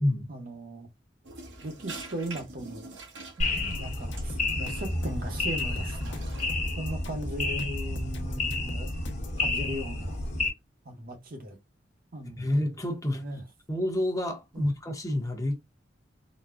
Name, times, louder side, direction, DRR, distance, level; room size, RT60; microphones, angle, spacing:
voice 1, 0.3-0.9 1.6-2.9 3.4-6.2 6.7-8.9 9.4-10.2 10.8-11.6 12.1-12.5 13.1-13.4 14.5-14.7, right 1 dB, 50° right, 1.0 m, -37 dB
sound 1, 1.2-6.5, right 3 dB, 85° right, 1.2 m, -46 dB
sound 2, 3.4-10.5, left 2 dB, 40° left, 1.3 m, -31 dB
sound 3, 3.6-9.4, left 1 dB, 75° left, 0.9 m, -43 dB
voice 2, 12.4-13.2 13.7-15.6, left 1 dB, 20° left, 1.0 m, -28 dB
4.0 x 2.2 x 2.4 m
head